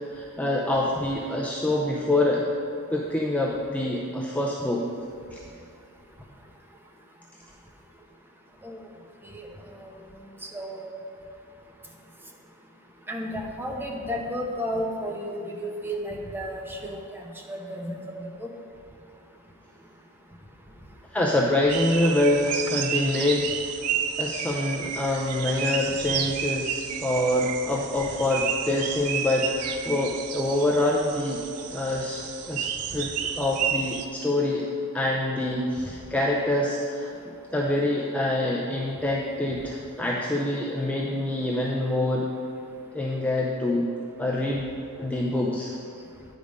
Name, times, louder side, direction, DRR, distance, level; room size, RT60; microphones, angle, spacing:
voice 1, 0.1-2.5 2.9-4.8 5.3-5.4 21.1-23.5 24.2-31.4 31.7-33.1 33.4-34.7 34.9-37.1 37.5-42.3 42.9-43.8 44.2-44.7 45.0-45.7, left 1 dB, 5° left, -2 dB, 0.5 m, -25 dB
voice 2, 10.5-10.9 13.1-17.2 17.5-18.5, equal, 10° right, 1 dB, 0.8 m, -33 dB
sound 1, 21.7-34.1, right 8 dB, 85° right, 0.5 m, -31 dB
9.4 x 5.3 x 5.1 m, 2.5 s
head